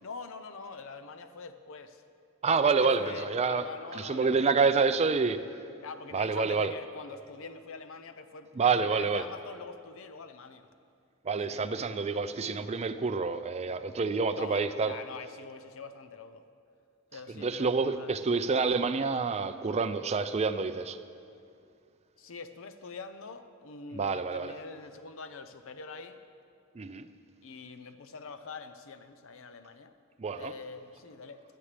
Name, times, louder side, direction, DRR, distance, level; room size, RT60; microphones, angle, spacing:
voice 1, 0.0-2.0 2.6-4.5 5.8-8.5 8.8-10.7 11.5-11.7 14.3-16.5 17.1-18.2 22.2-26.2 27.4-29.9 30.3-31.4, left 4 dB, 65° left, 9 dB, 0.7 m, -44 dB
voice 2, 2.4-3.7 3.9-5.6 6.1-6.7 8.6-9.2 11.2-14.9 17.3-21.0 23.9-24.5 26.7-27.1 30.2-30.5, right 4 dB, 30° right, 10 dB, 0.4 m, -28 dB
16.5 x 11.5 x 3.4 m, 2.4 s
head